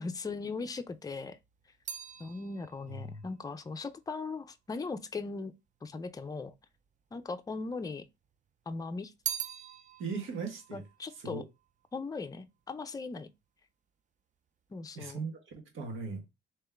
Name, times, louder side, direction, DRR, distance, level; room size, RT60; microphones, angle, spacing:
voice 1, 0.0-1.4 2.2-5.5 5.8-6.5 7.1-8.1 8.7-9.1 10.7-11.4 11.9-13.3 14.7-15.2, left 4 dB, 20° left, 0.5 m, -39 dB
sound 1, 0.9-5.3 6.1-6.9 7.2-8.3 8.7-12.2 12.5-13.0, right 8 dB, 40° right, 0.5 m, -43 dB
voice 2, 2.9-3.2 10.0-10.8 11.2-11.4 14.9-16.2, right 4 dB, 80° right, 1.3 m, -38 dB
3.5 x 3.0 x 3.4 m
cardioid pair, 90°, 20 cm